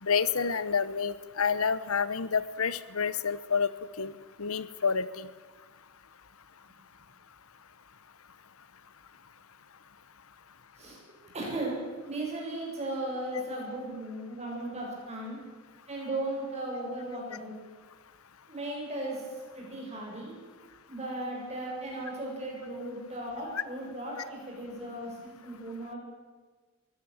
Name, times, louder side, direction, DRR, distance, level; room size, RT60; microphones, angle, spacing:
voice 1, 0.0-3.7 4.0-4.1 4.4-5.3 13.3-13.4, left 6 dB, 75° left, 16 dB, 1.0 m, -29 dB
voice 2, 11.3-11.8 12.1-15.4 15.9-17.6 18.5-20.4 20.9-26.0, right 1 dB, 30° right, -2 dB, 7.7 m, -36 dB
22.5 x 17.0 x 7.4 m, 1.4 s
head